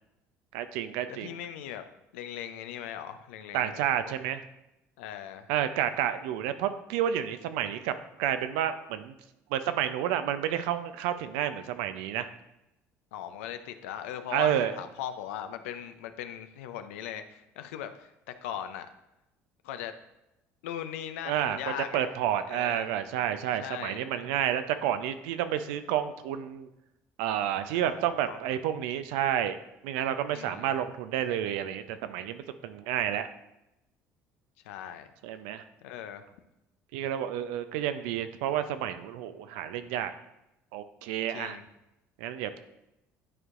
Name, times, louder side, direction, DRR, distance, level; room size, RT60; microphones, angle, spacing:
voice 1, 0.5-1.4 3.5-4.4 5.5-7.9 8.2-9.1 9.5-12.3 14.3-14.7 21.3-21.6 21.9-26.7 27.2-29.6 29.8-33.3 35.2-35.6 36.9-40.1 40.7-41.6 42.2-42.6, right 10 dB, 80° right, 10 dB, 0.5 m, -30 dB
voice 2, 1.1-1.8 2.1-3.8 5.0-5.5 13.1-18.9 19.6-19.9 20.6-22.1 22.5-22.9 23.6-24.1 27.7-28.4 30.3-30.7 34.6-35.1 35.8-36.2 41.3-41.6, left 10 dB, 85° left, 9 dB, 0.5 m, -39 dB
11.0 x 4.6 x 2.5 m, 0.90 s
hypercardioid pair, 75°, 7 cm